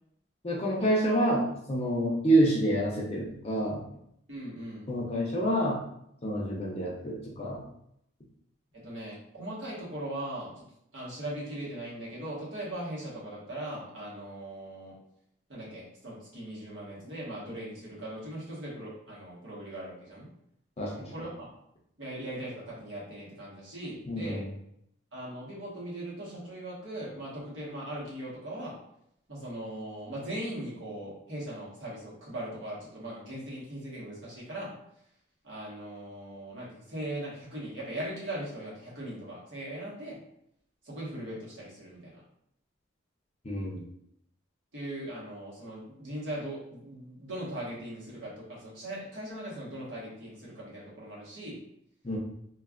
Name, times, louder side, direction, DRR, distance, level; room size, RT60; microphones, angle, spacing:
voice 1, 0.4-3.8 4.9-5.8 6.2-7.6 20.8-21.1 24.1-24.5 43.4-43.8 52.0-52.2, right 1 dB, 30° left, -3 dB, 0.5 m, -27 dB
voice 2, 4.3-4.9 8.7-10.6 10.9-14.9 15.5-20.3 21.0-21.5 22.0-24.4 25.1-28.8 29.3-34.7 35.4-40.2 40.8-42.2 44.7-51.6, right 1 dB, 70° right, -6 dB, 1.3 m, -39 dB
3.2 x 2.3 x 2.4 m, 0.74 s
head